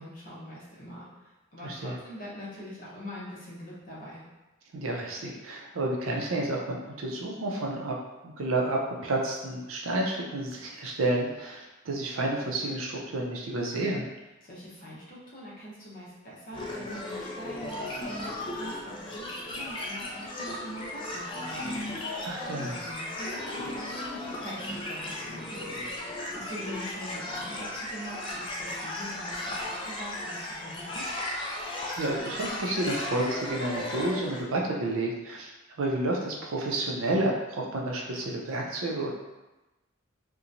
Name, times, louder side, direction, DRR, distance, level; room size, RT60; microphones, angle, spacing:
voice 1, 0.0-4.2 14.4-25.7 26.3-31.1, equal, 45° left, -6 dB, 0.8 m, -43 dB
voice 2, 1.6-1.9 4.7-8.0 8.2-14.0 22.2-22.8 32.0-35.5 35.8-39.1, right 2 dB, 80° right, -1 dB, 0.5 m, -30 dB
sound 1, 16.5-34.4, left 1 dB, 25° left, 0.3 m, -36 dB
2.8 x 2.2 x 2.5 m, 1.1 s
head